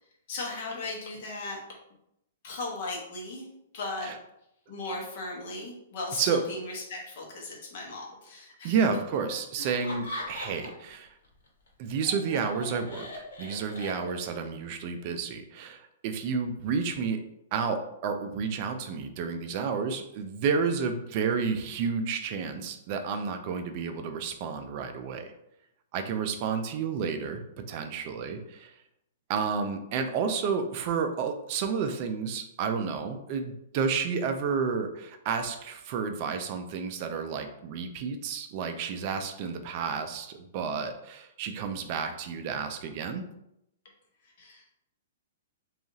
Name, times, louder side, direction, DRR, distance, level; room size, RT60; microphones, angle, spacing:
voice 1, 0.3-1.6 2.4-3.5 3.7-4.1 4.7-8.7 9.6-9.7 44.2-44.7, left 2 dB, 45° left, -1 dB, 0.8 m, -37 dB
voice 2, 8.6-11.1 11.8-13.1 13.4-17.2 17.5-25.3 25.9-28.7 29.3-43.2, right 5 dB, 35° right, 7 dB, 0.3 m, -31 dB
Laughter, 9.6-10.9 11.2-14.4, left 1 dB, 80° left, 1.1 m, -40 dB
2.8 x 2.3 x 2.6 m, 0.81 s
hypercardioid pair, 165°, 0 cm